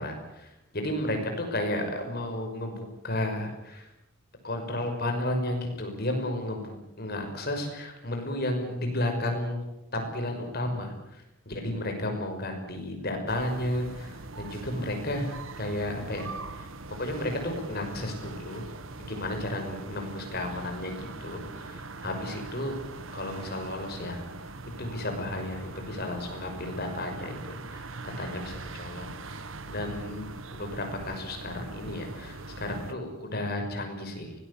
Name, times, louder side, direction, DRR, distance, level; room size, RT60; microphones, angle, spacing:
voice 1, 0.0-3.9 4.4-9.6 9.9-15.3 15.6-16.7 17.0-18.7 19.0-22.8 23.1-24.2 24.8-29.4 29.7-30.3 30.5-34.3, left 1 dB, 45° left, 4 dB, 5.9 m, -33 dB
sound 1, 13.3-32.9, right 3 dB, 65° right, 1.4 m, -42 dB
24.0 x 19.5 x 8.5 m, 0.89 s
head